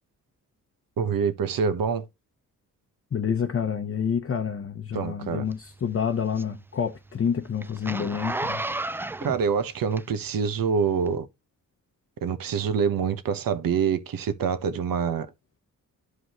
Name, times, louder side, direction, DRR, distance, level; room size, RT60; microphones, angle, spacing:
voice 1, 1.0-2.0 4.9-5.4 9.2-11.3 12.2-15.3, right 6 dB, 75° right, 1.2 m, -26 dB
voice 2, 3.1-8.6, left 7 dB, 40° left, 0.9 m, -28 dB
Zipper (clothing), 5.5-10.4 11.0-11.1, right 2 dB, 5° right, 0.3 m, -33 dB
11.5 x 4.9 x 3.0 m
cardioid pair, 90°, 35 cm